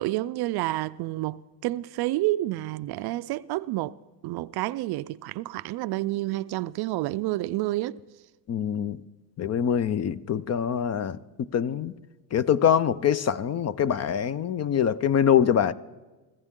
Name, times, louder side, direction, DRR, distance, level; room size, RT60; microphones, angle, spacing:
voice 1, 0.0-3.9 4.2-8.0, right 17 dB, 55° right, 0.5 m, -29 dB
voice 2, 8.5-9.0 9.4-11.9 12.3-15.7, left 8 dB, 35° left, 0.5 m, -24 dB
25.0 x 14.5 x 3.7 m
supercardioid pair, 90°, 49 cm